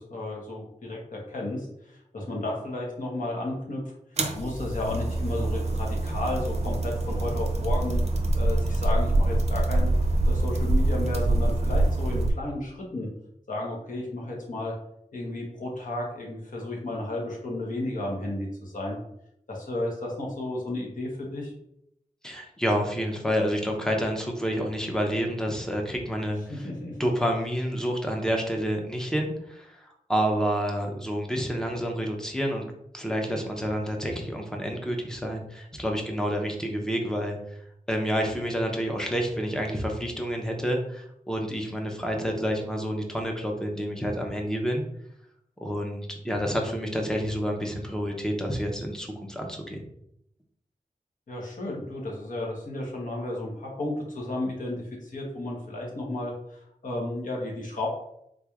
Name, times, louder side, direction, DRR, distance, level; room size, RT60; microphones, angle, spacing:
voice 1, 0.0-8.0 8.3-9.9 10.2-13.1 13.5-14.7 15.1-19.0 19.5-21.5 26.5-27.0 51.3-57.9, left 1 dB, 70° left, -2 dB, 1.1 m, -33 dB
sound 1, 4.2-12.3, right 2 dB, 50° right, 0.5 m, -25 dB
voice 2, 22.2-26.7 27.0-32.6 32.9-37.4 37.9-44.8 45.6-49.8, equal, 5° left, 1 dB, 0.6 m, -29 dB
3.8 x 3.1 x 2.4 m, 0.77 s
wide cardioid pair, 100°, 14 cm